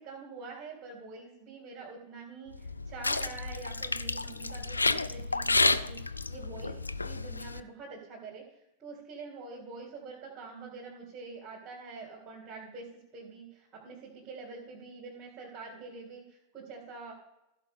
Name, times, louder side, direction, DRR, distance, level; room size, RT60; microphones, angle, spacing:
voice 1, 0.0-6.8 7.0-17.1, right 4 dB, 30° right, -5 dB, 3.3 m, -46 dB
sound 1, 2.5-7.6, left 3 dB, 80° left, 0.4 m, -30 dB
15.5 x 5.3 x 5.5 m, 0.90 s
figure-of-eight pair, 90°, 0 cm